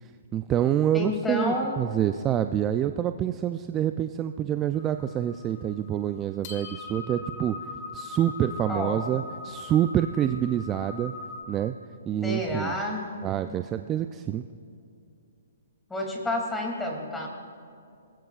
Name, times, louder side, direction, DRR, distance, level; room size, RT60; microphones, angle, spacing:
voice 1, 0.0-7.6 7.9-11.1 11.5-11.7 12.1-12.8 13.2-14.4, right 10 dB, 20° right, 9 dB, 0.4 m, -27 dB
voice 2, 0.9-1.8 8.7-9.0 12.2-13.2 15.9-17.3, left 1 dB, 5° left, 0 dB, 2.7 m, -29 dB
sound 1, 4.7-11.4, left 3 dB, 35° left, 1.7 m, -41 dB
25.0 x 20.0 x 2.4 m, 2.4 s
hypercardioid pair, 150°, 0 cm